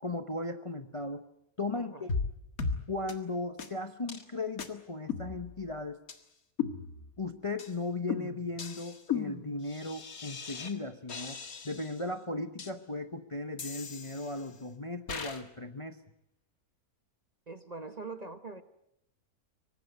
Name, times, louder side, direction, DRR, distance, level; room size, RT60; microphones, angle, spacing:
voice 1, 0.0-1.3 1.6-2.1 2.9-6.0 7.2-11.4 11.6-16.0, left 2 dB, 25° left, 8 dB, 0.9 m, -37 dB
voice 2, 1.7-2.1 17.5-18.6, right 3 dB, 30° right, 9 dB, 1.1 m, -43 dB
sound 1, 2.1-2.3 2.6-2.8 3.1-3.2 3.6-3.7 4.1-4.2 4.6-4.7 5.1-5.7 6.1-6.2 6.6-7.2 7.6-7.7 8.1-10.7 11.1-12.0 12.6-12.7 13.6-14.5 15.1-15.4, left 6 dB, 65° left, 2.2 m, -37 dB
24.0 x 19.0 x 9.4 m, 0.80 s
omnidirectional pair, 1.6 m